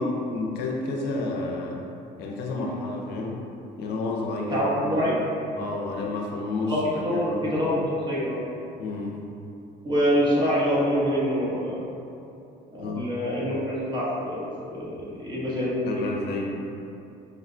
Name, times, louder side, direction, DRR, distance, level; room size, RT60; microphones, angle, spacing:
voice 1, 0.0-1.9 2.2-3.5 3.8-4.7 5.0-5.2 5.5-7.7 8.8-9.2 12.8-13.1 15.3-15.6 15.9-16.5, left 3 dB, 70° left, -1 dB, 0.5 m, -30 dB
voice 2, 4.5-5.2 6.7-7.7 8.1-8.4 9.8-11.8 12.7-16.0, equal, 30° right, -7 dB, 0.9 m, -25 dB
4.8 x 2.1 x 2.5 m, 2.7 s
cardioid pair, 110°, 17 cm